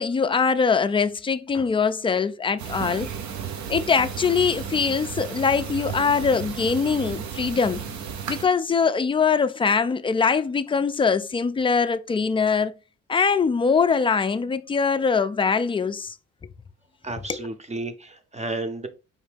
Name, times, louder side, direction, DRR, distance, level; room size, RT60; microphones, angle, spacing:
voice 1, 0.0-3.1 3.7-7.8 8.3-12.7 13.1-16.1 17.3-17.4, left 5 dB, 20° left, 0.3 m, -22 dB
sound 1, 2.6-8.5, right 7 dB, 70° right, 0.7 m, -34 dB
voice 2, 17.0-18.9, right 2 dB, 20° right, 0.7 m, -32 dB
4.9 x 2.7 x 3.4 m
cardioid pair, 90°, 30 cm